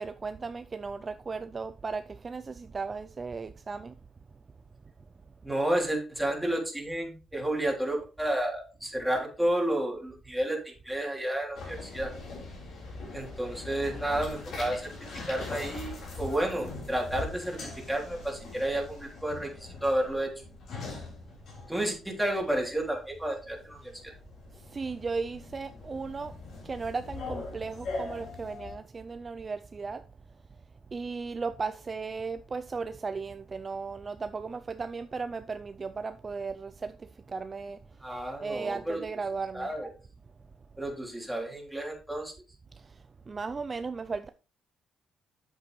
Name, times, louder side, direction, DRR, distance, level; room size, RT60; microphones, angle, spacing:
voice 1, 0.0-3.9 5.3-5.4 24.5-30.6 30.9-38.1 38.4-39.7 42.7-44.3, right 4 dB, 35° right, 0.4 m, -36 dB
voice 2, 5.4-12.1 13.1-14.9 15.3-20.3 21.7-24.1 38.0-39.0 39.5-39.9 40.8-42.3, right 1 dB, 5° right, 3.1 m, -31 dB
sound 1, 11.5-28.7, left 3 dB, 65° left, 4.0 m, -42 dB
8.0 x 7.6 x 3.1 m
cardioid pair, 90°, 0 cm